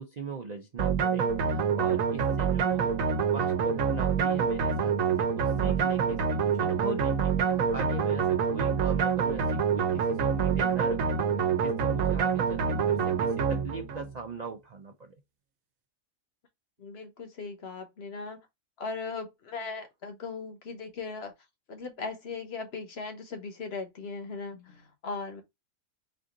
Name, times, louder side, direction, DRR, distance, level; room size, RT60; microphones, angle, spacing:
voice 1, 0.0-15.2, right 4 dB, 60° right, 0.4 m, -40 dB
sound 1, 0.8-14.1, right 6 dB, 75° right, 1.1 m, -26 dB
voice 2, 16.8-18.5 18.8-21.3 21.7-25.4, left 4 dB, 50° left, 1.1 m, -38 dB
4.3 x 2.5 x 3.7 m
omnidirectional pair, 1.4 m